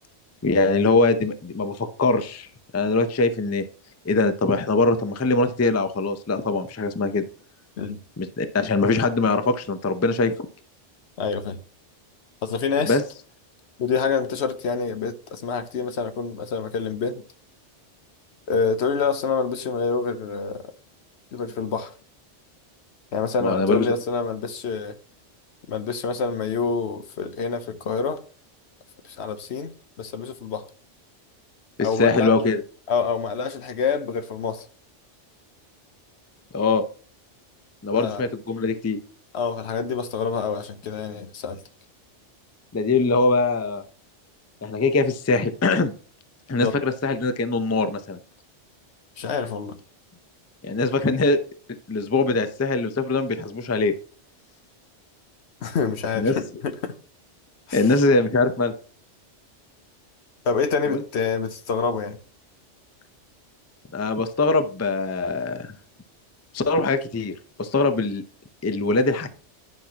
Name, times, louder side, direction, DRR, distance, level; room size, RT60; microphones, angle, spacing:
voice 1, 0.4-2.5 2.7-3.6 4.0-7.2 8.2-10.3 12.9-13.0 23.4-23.9 31.8-32.6 36.5-36.8 37.8-39.0 42.7-43.8 44.6-45.9 46.5-48.2 50.6-51.4 51.9-53.9 56.2-56.4 57.7-58.7 60.9-61.0 63.9-65.7 66.5-68.2 68.6-69.4, left 3 dB, 20° left, 0.5 m, -22 dB
voice 2, 11.2-11.6 12.4-13.0 13.8-17.2 18.5-20.7 21.3-21.9 23.1-25.0 25.7-28.2 29.0-30.7 31.8-32.3 32.9-34.7 37.9-38.2 39.3-41.6 46.6-46.8 49.2-49.8 55.6-56.9 57.7-57.8 60.4-62.2, left 5 dB, 70° left, 1.1 m, -27 dB
11.0 x 5.9 x 2.9 m
omnidirectional pair, 1.2 m